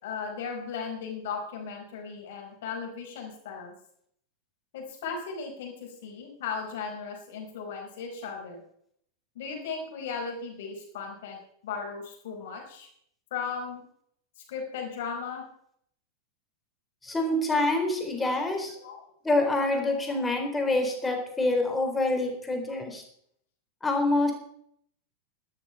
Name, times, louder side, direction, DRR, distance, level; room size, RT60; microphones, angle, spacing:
voice 1, 0.0-3.7 4.7-8.6 9.3-11.4 11.6-12.9 13.3-13.8 14.5-15.4 18.8-19.0 21.3-21.4, left 5 dB, 55° left, 2 dB, 4.9 m, -36 dB
voice 2, 17.0-18.8 19.2-23.0 23.8-24.3, left 2 dB, 10° left, 3 dB, 3.9 m, -26 dB
12.5 x 12.0 x 5.6 m, 0.67 s
figure-of-eight pair, 90°, 0 cm